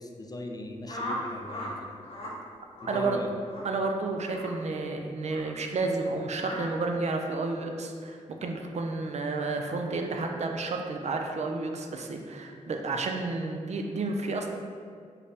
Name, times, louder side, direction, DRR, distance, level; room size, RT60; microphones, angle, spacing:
voice 1, 0.0-1.9 2.8-3.3, left 1 dB, 30° left, 2 dB, 0.4 m, -39 dB
sound 1, 0.9-1.7 2.0-2.3 2.8-3.1 3.4-3.7 4.3-4.5 5.3-5.5 6.4-6.6, equal, 50° left, 0.8 m, -37 dB
voice 2, 2.9-3.2 3.6-14.5, right 3 dB, 60° right, 3 dB, 0.4 m, -31 dB
5.2 x 2.0 x 2.7 m, 2.1 s
cardioid pair, 65°, 13 cm